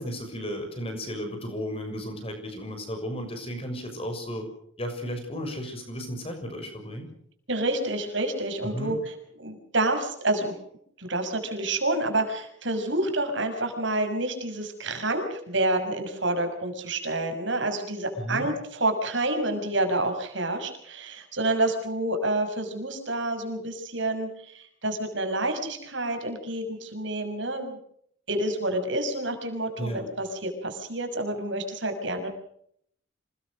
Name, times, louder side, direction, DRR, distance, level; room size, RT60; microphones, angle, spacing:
voice 1, 0.0-4.5 4.8-7.1 8.6-8.9 18.2-18.5 29.8-30.1, equal, 30° left, 5 dB, 6.5 m, -34 dB
voice 2, 7.5-10.5 11.0-27.8 28.3-32.3, right 2 dB, 70° right, 5 dB, 6.2 m, -28 dB
27.5 x 21.0 x 6.4 m, 0.69 s
head